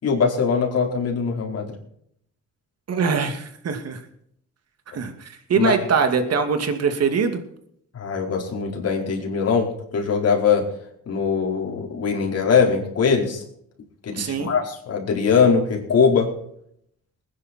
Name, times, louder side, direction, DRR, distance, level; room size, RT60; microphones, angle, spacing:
voice 1, 0.0-1.7 5.6-5.8 7.9-9.7 9.9-10.7 11.1-13.4 14.1-16.3, left 5 dB, 55° left, 0 dB, 4.7 m, -21 dB
voice 2, 2.9-4.0 4.9-7.4 14.1-14.5, right 5 dB, 55° right, 7 dB, 2.6 m, -23 dB
20.5 x 10.5 x 4.5 m, 0.69 s
cardioid pair, 90°, 30 cm